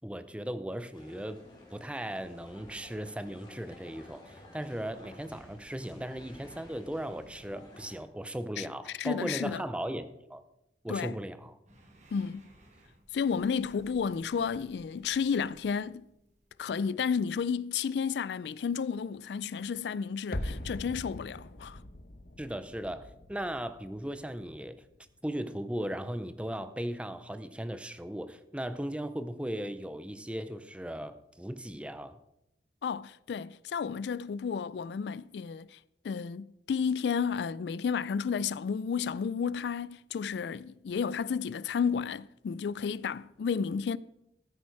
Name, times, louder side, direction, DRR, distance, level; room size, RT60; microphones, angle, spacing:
voice 1, 0.0-1.4 1.7-10.4 10.8-11.6 22.4-24.8 25.2-32.2, right 1 dB, 5° right, 0.6 m, -37 dB
sound 1, 0.9-8.0, left 1 dB, 25° left, 2.9 m, -53 dB
voice 2, 8.6-9.6 10.9-11.1 12.1-12.5 13.1-16.1 16.6-21.8 32.8-35.8 36.0-44.0, left 6 dB, 70° left, 0.3 m, -32 dB
sound 2, 11.7-17.2, right 1 dB, 40° right, 2.0 m, -60 dB
sound 3, 20.3-25.3 25.5-25.6, left 1 dB, 55° left, 1.0 m, -42 dB
14.0 x 8.5 x 4.7 m
head